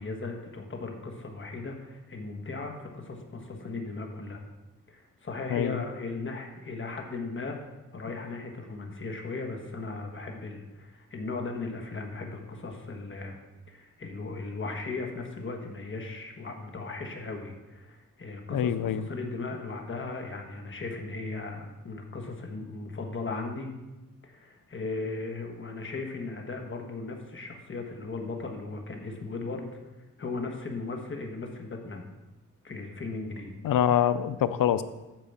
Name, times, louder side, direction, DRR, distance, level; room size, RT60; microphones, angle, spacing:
voice 1, 0.0-4.4 4.9-7.7 7.9-13.4 13.7-23.7 24.2-29.7 30.2-32.0 32.6-33.5, left 3 dB, 40° left, 3 dB, 1.4 m, -37 dB
voice 2, 18.5-19.0 33.6-34.8, left 10 dB, 85° left, 13 dB, 0.6 m, -25 dB
9.0 x 4.9 x 7.3 m, 1.0 s
wide cardioid pair, 140°, 32 cm